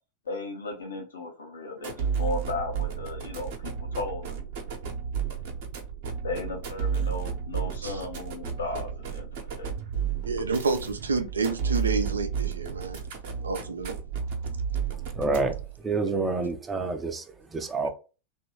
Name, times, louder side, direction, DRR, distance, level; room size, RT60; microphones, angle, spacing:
voice 1, 0.2-4.7 6.2-9.7, left 3 dB, 70° left, 0.9 m, -35 dB
sound 1, 1.8-15.7, right 7 dB, 50° right, 0.9 m, -32 dB
voice 2, 10.3-13.0 13.4-14.0, right 4 dB, 75° right, 0.5 m, -29 dB
voice 3, 15.2-15.5 15.8-17.2 17.5-17.9, right 3 dB, 15° right, 0.6 m, -27 dB
3.0 x 2.6 x 3.0 m
figure-of-eight pair, 90°, 0 cm